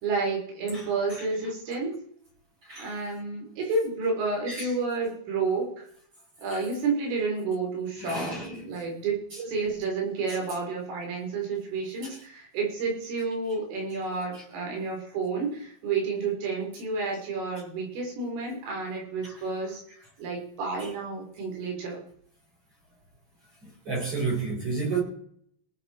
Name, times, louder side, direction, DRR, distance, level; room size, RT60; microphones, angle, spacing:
voice 1, 0.0-2.0 2.8-5.9 6.4-19.8 20.2-22.0, right 4 dB, 75° right, 6.5 m, -30 dB
voice 2, 2.6-2.9 4.5-4.7 6.5-6.6 8.0-8.7 10.3-10.4 14.3-14.4 19.2-19.3 23.6-25.0, right 4 dB, 30° right, 5.3 m, -31 dB
19.0 x 9.2 x 4.4 m
omnidirectional pair, 5.8 m